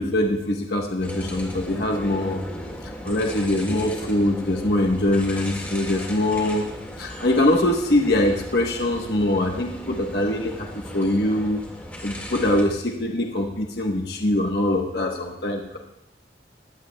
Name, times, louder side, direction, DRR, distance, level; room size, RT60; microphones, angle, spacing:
voice 1, 0.0-2.4 3.0-6.7 7.0-11.6 12.0-15.8, left 1 dB, 65° left, 1 dB, 1.2 m, -23 dB
sound 1, 1.0-12.7, equal, 10° left, 1.9 m, -36 dB
20.0 x 16.0 x 2.3 m, 0.80 s
head